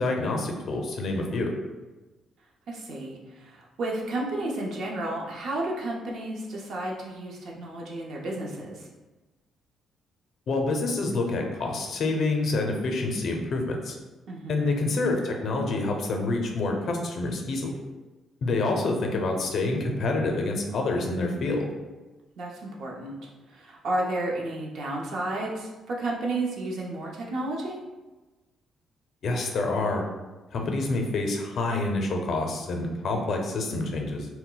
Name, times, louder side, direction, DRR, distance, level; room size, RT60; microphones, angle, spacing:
voice 1, 0.0-1.5 10.5-14.0 14.5-17.7 18.4-21.7 29.2-30.1 30.5-34.3, left 2 dB, 60° left, 2 dB, 0.5 m, -27 dB
voice 2, 2.7-8.9 14.3-14.6 22.4-27.8, right 2 dB, 70° right, -2 dB, 0.6 m, -32 dB
2.2 x 2.1 x 3.8 m, 1.2 s
cardioid pair, 95°, 0 cm